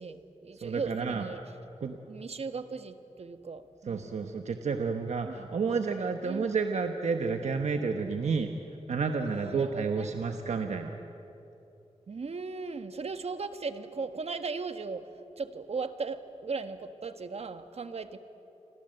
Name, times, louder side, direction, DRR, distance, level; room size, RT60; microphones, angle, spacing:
voice 1, 0.0-1.6 2.1-4.1 5.2-5.5 6.2-6.5 9.2-10.1 12.1-18.2, right 4 dB, 65° right, 9 dB, 1.5 m, -37 dB
voice 2, 0.6-1.2 1.8-2.0 3.9-8.5 8.9-10.9, right 5 dB, 85° right, 5 dB, 1.3 m, -30 dB
30.0 x 24.5 x 8.0 m, 3.0 s
wide cardioid pair, 90°, 12 cm